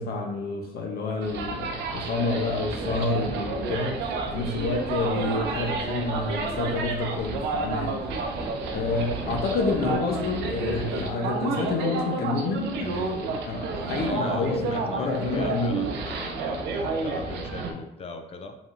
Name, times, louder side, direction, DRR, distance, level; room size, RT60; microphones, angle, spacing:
voice 1, 0.0-8.0 8.7-15.8, left 3 dB, 65° left, 2 dB, 0.8 m, -29 dB
sound 1, 1.2-17.7, right 3 dB, 85° right, 0.6 m, -30 dB
sound 2, 3.9-10.0, right 1 dB, 25° right, 1.3 m, -44 dB
voice 2, 8.6-8.9 14.0-18.6, left 3 dB, 35° left, 5 dB, 0.5 m, -39 dB
4.9 x 3.5 x 2.5 m, 0.87 s
cardioid pair, 110°, 17 cm